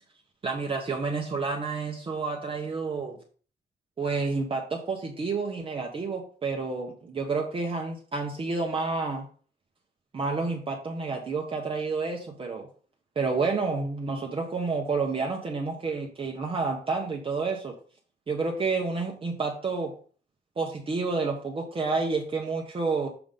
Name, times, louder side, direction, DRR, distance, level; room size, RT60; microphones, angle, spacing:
voice 1, 0.4-3.2 4.0-9.3 10.1-12.7 13.2-17.7 18.3-19.9 20.6-23.1, right 4 dB, 30° right, 0 dB, 0.9 m, -29 dB
6.9 x 3.8 x 5.2 m, 0.42 s
wide cardioid pair, 175°, 18 cm